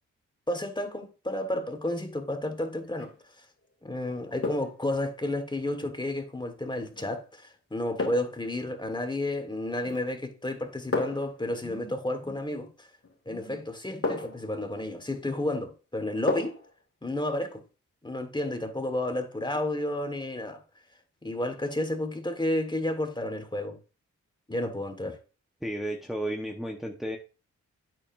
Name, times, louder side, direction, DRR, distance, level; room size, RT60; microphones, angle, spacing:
voice 1, 0.5-3.1 3.8-12.9 13.2-16.6 17.0-17.6 18.0-20.6 21.2-23.8 24.5-25.2, left 1 dB, 15° left, 1.7 m, -31 dB
sound 1, 2.8-3.2 4.4-4.8 6.9-7.1 8.0-8.4 9.8-10.2 10.9-11.4 13.0-13.1 14.0-14.5 16.3-16.7 17.1-17.2, left 3 dB, 45° left, 2.4 m, -33 dB
voice 2, 25.6-27.2, right 1 dB, ahead, 1.2 m, -33 dB
8.7 x 6.8 x 2.7 m
cardioid pair, 50°, 31 cm